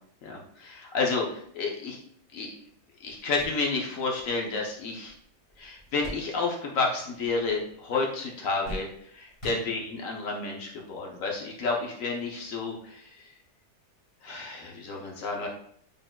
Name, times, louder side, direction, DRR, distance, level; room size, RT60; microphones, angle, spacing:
voice 1, 0.2-2.0 2.3-2.5 3.0-5.1 5.6-13.2 14.2-15.5, left 3 dB, 65° left, 0 dB, 1.0 m, -31 dB
sound 1, 3.1-6.9 7.1-7.8 8.1-10.2 11.0-11.1 12.4-12.5, equal, 20° left, 1.6 m, -44 dB
4.0 x 3.5 x 2.2 m, 0.65 s
omnidirectional pair, 1.6 m